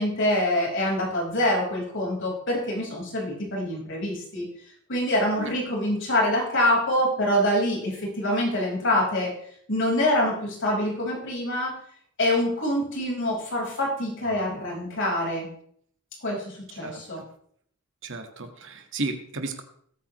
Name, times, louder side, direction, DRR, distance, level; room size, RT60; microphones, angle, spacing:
voice 1, 0.0-4.4 4.9-9.3 9.7-11.7 12.2-15.5 16.2-17.2, left 1 dB, 60° left, -2 dB, 4.9 m, -25 dB
voice 2, 18.0-19.6, right 2 dB, 60° right, 6 dB, 1.7 m, -33 dB
19.5 x 8.9 x 3.1 m, 0.65 s
head